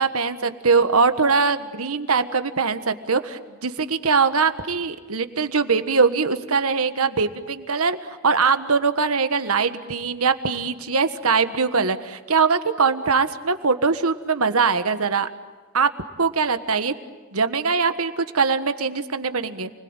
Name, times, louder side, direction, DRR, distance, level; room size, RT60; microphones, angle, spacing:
voice 1, 0.0-8.0 8.2-15.3 15.7-15.9 16.2-16.9 17.3-19.7, right 5 dB, 85° right, 10 dB, 1.4 m, -22 dB
29.5 x 21.0 x 9.0 m, 1.4 s
head